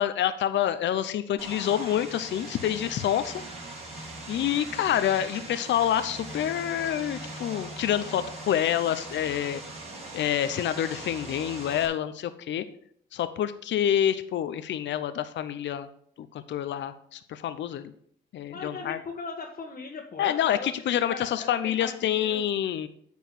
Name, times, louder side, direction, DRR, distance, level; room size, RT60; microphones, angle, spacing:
voice 1, 0.0-3.3 4.3-9.6 10.1-12.6 13.1-15.9 16.2-17.9 18.3-19.0 20.2-22.9, left 10 dB, 65° left, 12 dB, 0.7 m, -27 dB
Vehicle, 1.4-11.9, right 2 dB, 30° right, 4.4 m, -40 dB
voice 2, 18.5-22.4, left 4 dB, 45° left, -1 dB, 1.4 m, -39 dB
9.3 x 4.6 x 7.1 m, 0.64 s
cardioid pair, 90°, 20 cm